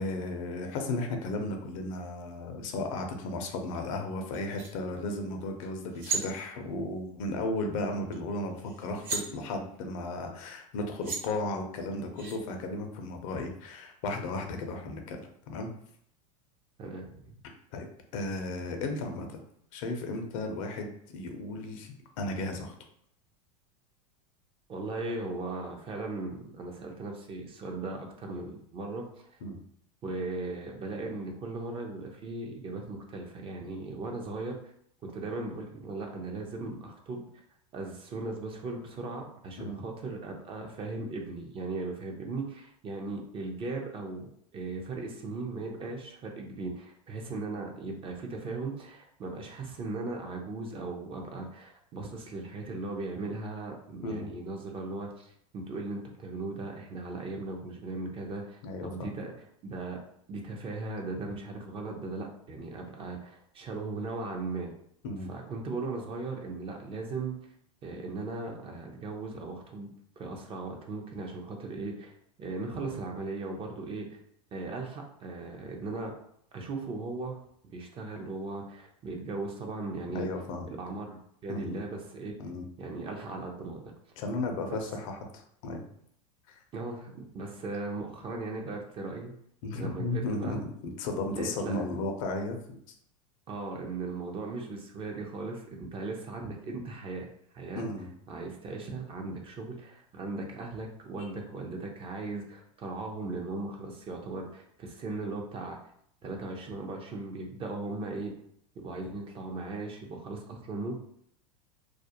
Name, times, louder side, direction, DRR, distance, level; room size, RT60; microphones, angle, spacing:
voice 1, 0.0-15.2 15.5-15.7 17.7-17.9 18.1-19.4 19.7-22.7 29.4-29.6 39.6-39.8 54.0-54.3 58.6-58.9 65.0-65.3 80.1-80.7 81.5-81.8 82.4-82.6 84.2-85.8 86.5-86.6 89.6-92.9 97.8-98.1 101.2-101.3, left 2 dB, 65° left, 4 dB, 0.5 m, -35 dB
sound 1, 3.4-3.5 4.3-4.7 5.6-5.7 5.9-6.2 8.1-8.2 8.5-9.2 10.6-10.7 11.0-11.2 12.2-12.4, right 5 dB, 50° right, 1.0 m, -34 dB
voice 2, 16.8-17.3 24.7-29.4 30.0-34.6 35.1-37.2 37.7-59.3 59.6-60.0 60.3-64.7 65.3-67.5 67.8-69.9 70.2-72.1 72.4-74.2 74.5-76.1 76.5-77.4 77.7-80.3 80.6-81.2 81.4-82.4 82.8-83.9 84.7-84.8 86.7-89.3 89.8-90.6 91.3-91.9 93.5-97.3 97.5-97.9 98.3-105.8 106.2-108.3 108.8-111.0, right 3 dB, 30° right, 2 dB, 0.5 m, -38 dB
2.4 x 2.1 x 2.8 m, 0.69 s
hypercardioid pair, 100°, 18 cm